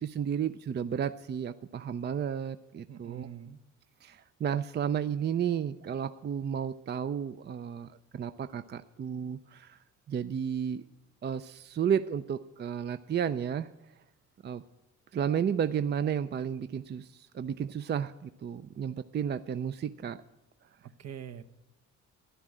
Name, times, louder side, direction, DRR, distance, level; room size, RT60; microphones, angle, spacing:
voice 1, 0.0-3.3 4.0-9.8 10.1-10.9 11.2-13.7 14.4-14.6 15.1-20.2, right 8 dB, 35° right, 12 dB, 0.4 m, -32 dB
voice 2, 2.9-3.6 20.8-21.4, right 9 dB, 60° right, 10 dB, 0.8 m, -44 dB
11.5 x 11.0 x 7.4 m, 0.90 s
cardioid pair, 90°, 30 cm